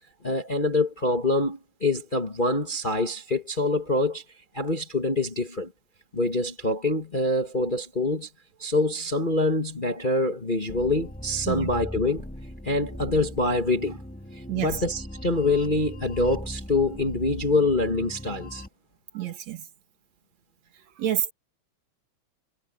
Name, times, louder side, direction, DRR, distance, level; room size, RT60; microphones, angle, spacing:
voice 1, 0.2-4.2 4.5-5.7 6.1-8.3 8.6-12.3 12.6-14.0 14.3-18.6, left 2 dB, 25° left, 1.2 m, -25 dB
sound 1, 10.7-18.7, equal, 5° left, 1.1 m, -39 dB
voice 2, 14.5-14.8 19.1-19.7 21.0-21.3, right 11 dB, 65° right, 2.8 m, -28 dB
omnidirectional pair, 3.3 m